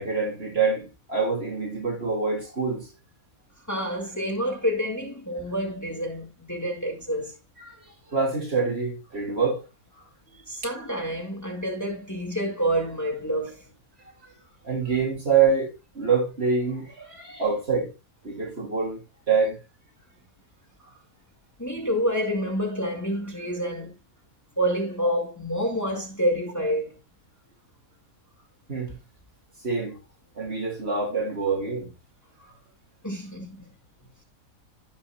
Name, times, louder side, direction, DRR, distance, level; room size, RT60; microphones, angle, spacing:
voice 1, 0.0-2.9 7.6-7.7 8.1-9.6 14.6-17.9 18.2-19.6 28.7-29.0 29.6-30.0 30.4-31.9, right 5 dB, 45° right, 2.9 m, -26 dB
voice 2, 3.7-7.4 10.0-10.1 10.5-13.7 20.8-20.9 21.6-23.9 24.6-27.0 32.4-32.5 33.0-33.6, equal, 10° left, 2.2 m, -28 dB
16.0 x 5.6 x 2.3 m
omnidirectional pair, 1.5 m